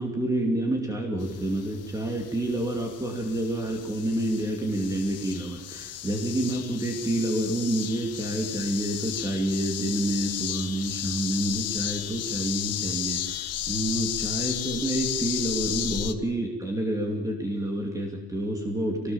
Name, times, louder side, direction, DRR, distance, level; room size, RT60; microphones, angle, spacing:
voice 1, 0.0-19.1, right 1 dB, 10° right, 1 dB, 2.9 m, -28 dB
sound 1, 1.2-16.1, left 11 dB, 55° left, 1.3 m, -34 dB
23.0 x 19.5 x 7.3 m, 1.0 s
cardioid pair, 165°, 30 cm